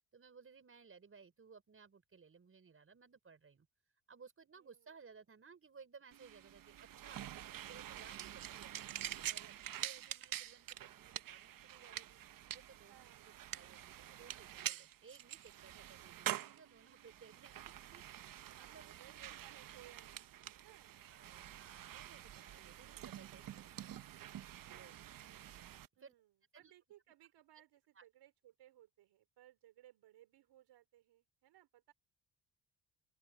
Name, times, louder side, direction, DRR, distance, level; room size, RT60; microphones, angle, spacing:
voice 1, 0.0-3.7 4.1-8.8 9.2-9.5 9.8-12.2 12.5-13.1 13.5-17.6 17.9-19.4 20.1-20.2 20.7-20.8 21.1-24.0 24.7-25.1 26.0-26.1 26.5-26.7 28.0-28.1, right 5 dB, 30° right, 5.2 m, -60 dB
voice 2, 4.5-5.1 12.9-13.3 18.5-21.0 26.0-31.9, right 13 dB, 80° right, 5.0 m, -64 dB
sound 1, 6.1-25.9, right 12 dB, 55° right, 0.9 m, -47 dB
open air
cardioid pair, 115°, 41 cm